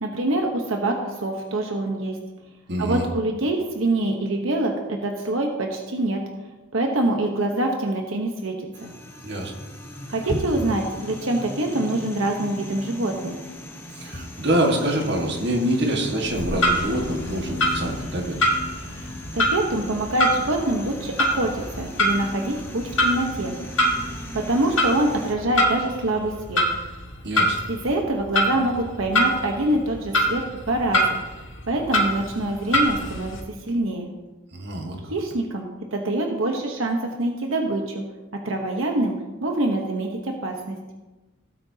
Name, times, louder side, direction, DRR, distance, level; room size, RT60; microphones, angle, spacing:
voice 1, 0.0-2.2 2.8-6.2 6.7-8.5 8.8-8.9 10.1-13.3 18.9-19.1 19.3-23.5 24.3-26.6 27.7-31.2 31.7-34.1 35.1-38.0 38.3-39.1 39.4-40.8, right 1 dB, 85° right, 2 dB, 1.1 m, -25 dB
voice 2, 2.7-3.0 9.2-9.5 13.9-18.5 27.2-27.6 34.5-35.1, right 1 dB, 55° right, 1 dB, 1.7 m, -25 dB
sound 1, 8.7-25.3, left 1 dB, 10° left, 1.0 m, -38 dB
sound 2, 10.2-10.9 12.7-12.8 13.2-13.3 14.0-17.6, equal, 40° left, 1.2 m, -35 dB
Clock, 16.2-33.4, equal, 75° left, 1.9 m, -26 dB
16.5 x 8.7 x 2.9 m, 1.2 s
head